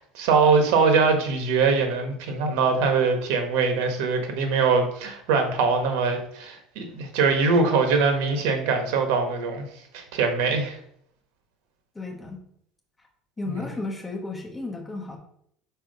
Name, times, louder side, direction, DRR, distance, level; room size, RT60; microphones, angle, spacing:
voice 1, 0.0-9.6 9.9-10.8, right 4 dB, 80° right, 5 dB, 1.4 m, -22 dB
voice 2, 11.9-12.4 13.4-15.2, left 2 dB, 10° left, 1 dB, 1.1 m, -33 dB
4.9 x 4.3 x 5.3 m, 0.68 s
cardioid pair, 165°, 0 cm